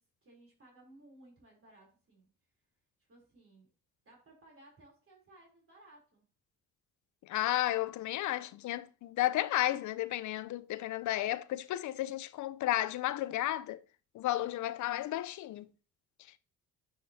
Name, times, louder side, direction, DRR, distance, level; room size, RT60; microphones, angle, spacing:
voice 1, 0.0-2.3 3.0-3.7 4.0-6.3, right 1 dB, 45° right, 3.4 m, -59 dB
voice 2, 7.3-13.8 14.1-15.7, left 14 dB, 75° left, 0.5 m, -33 dB
9.6 x 5.2 x 2.7 m
cardioid pair, 90°, 30 cm